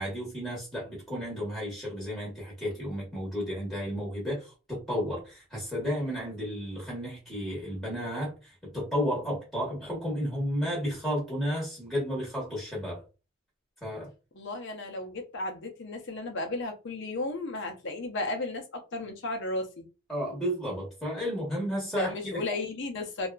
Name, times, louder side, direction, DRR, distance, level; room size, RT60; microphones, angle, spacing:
voice 1, 0.0-13.0 13.8-14.1 20.1-22.4, equal, ahead, 1.0 m, -32 dB
voice 2, 14.3-19.8 22.0-23.3, left 2 dB, 55° left, 0.6 m, -34 dB
2.7 x 2.4 x 2.3 m
head